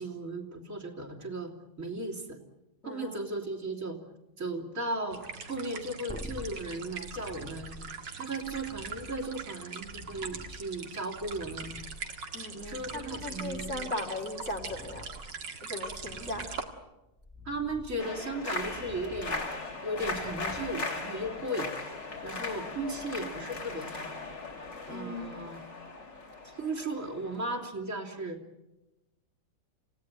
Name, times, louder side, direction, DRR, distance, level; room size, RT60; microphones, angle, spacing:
voice 1, 0.0-1.5 1.8-2.4 2.8-4.0 4.4-5.2 5.5-7.7 8.2-11.7 12.5-14.0 16.2-16.5 17.5-19.5 19.8-21.7 22.2-24.1 24.9-25.6 26.4-28.4, right 2 dB, 35° right, 5 dB, 3.5 m, -36 dB
voice 2, 2.8-3.2 12.3-15.1 15.6-16.5 24.9-25.4, left 1 dB, 35° left, 1 dB, 2.5 m, -38 dB
sound 1, 5.1-16.6, right 5 dB, 55° right, 2.5 m, -42 dB
sound 2, 6.1-21.4 24.5-24.6, left 1 dB, 5° left, 1.5 m, -49 dB
sound 3, 18.0-27.7, left 3 dB, 55° left, 3.8 m, -38 dB
29.0 x 17.0 x 9.2 m, 0.99 s
omnidirectional pair, 2.3 m